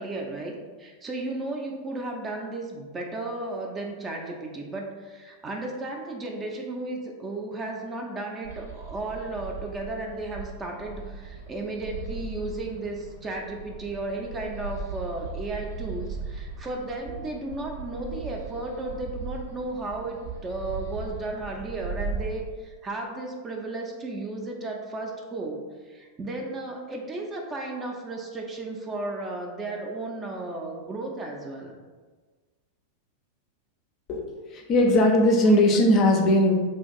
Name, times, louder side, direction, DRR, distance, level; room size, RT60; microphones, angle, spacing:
voice 1, 0.0-31.7, right 2 dB, 20° right, 1 dB, 0.4 m, -34 dB
sound 1, 8.4-22.3, right 4 dB, 65° right, 0.8 m, -38 dB
voice 2, 34.1-36.5, left 1 dB, 35° left, 2 dB, 0.5 m, -19 dB
2.5 x 2.4 x 3.9 m, 1.4 s
figure-of-eight pair, 90°, 0 cm